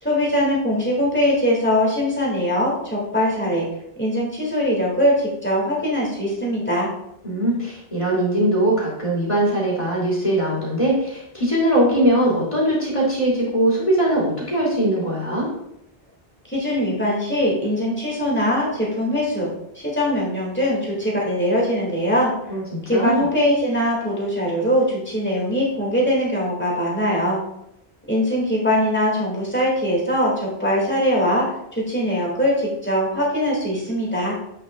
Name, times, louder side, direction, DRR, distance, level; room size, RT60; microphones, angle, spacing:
voice 1, 0.0-3.7 4.0-6.9 16.5-22.3 22.9-27.4 28.1-31.5 31.7-34.3, equal, 10° left, -5 dB, 2.2 m, -21 dB
voice 2, 7.2-15.5 22.5-23.2, right 1 dB, 30° left, -5 dB, 2.9 m, -21 dB
8.5 x 6.1 x 2.4 m, 0.80 s
omnidirectional pair, 1.1 m